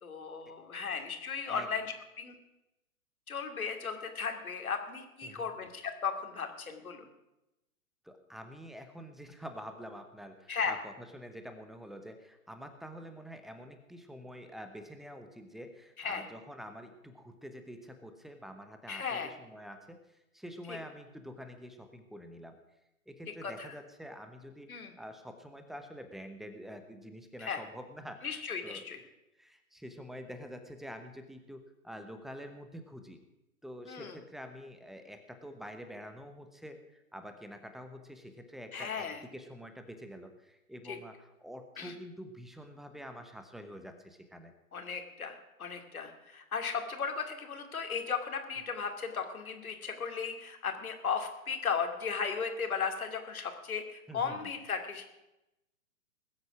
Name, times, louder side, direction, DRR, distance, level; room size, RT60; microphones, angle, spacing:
voice 1, 0.0-1.9 2.2-2.4 3.3-7.1 10.5-10.7 16.0-16.3 18.9-19.3 20.7-20.8 23.4-23.7 24.7-24.9 27.4-27.6 28.2-29.0 33.9-34.2 38.7-39.2 40.9-41.0 41.8-41.9 44.7-55.0, left 6 dB, 75° left, 5 dB, 2.6 m, -36 dB
voice 2, 8.0-22.6 23.1-24.7 25.0-28.8 29.4-33.2 33.6-44.5 54.1-54.4, equal, ahead, 7 dB, 1.0 m, -47 dB
20.0 x 8.0 x 6.2 m, 0.93 s
figure-of-eight pair, 125°, 43 cm